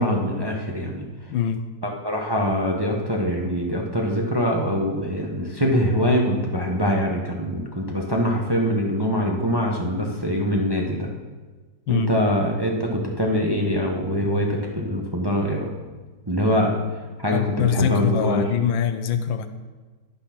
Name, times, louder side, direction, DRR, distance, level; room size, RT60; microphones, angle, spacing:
voice 1, 0.0-1.3 1.8-11.1 11.9-15.7 16.3-16.7 17.2-18.4, equal, 15° right, 0 dB, 0.9 m, -23 dB
voice 2, 1.3-1.6 11.9-12.1 17.1-19.5, left 8 dB, 85° left, 9 dB, 1.5 m, -23 dB
10.0 x 9.7 x 6.0 m, 1.3 s
omnidirectional pair, 2.1 m